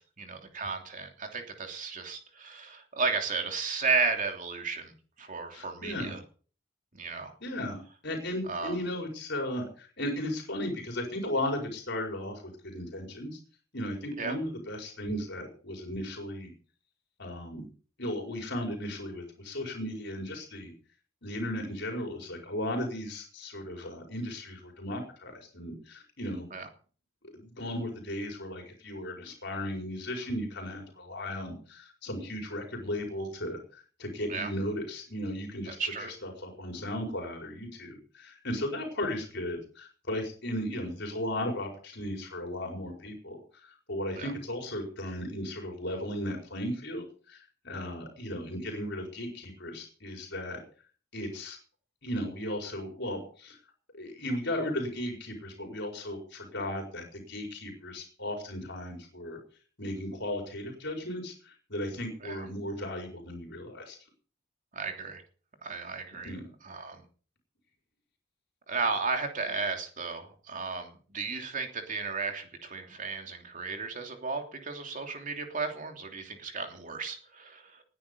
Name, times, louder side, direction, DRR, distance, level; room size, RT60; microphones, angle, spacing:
voice 1, 0.0-6.2 6.9-7.3 8.5-8.8 14.2-14.3 26.5-26.7 34.3-34.5 35.7-36.1 44.1-44.3 62.2-62.5 64.7-65.2 65.6-66.3 66.6-67.0 68.7-77.8, right 4 dB, 40° right, 4 dB, 3.1 m, -34 dB
voice 2, 5.5-6.2 7.1-13.4 13.7-16.5 17.2-17.7 18.0-20.7 21.2-26.5 27.3-50.6 51.1-51.6 52.0-53.6 53.9-59.4 59.8-64.0 66.2-66.4, left 1 dB, 60° left, 2 dB, 5.0 m, -36 dB
20.5 x 9.9 x 5.4 m, 0.41 s
head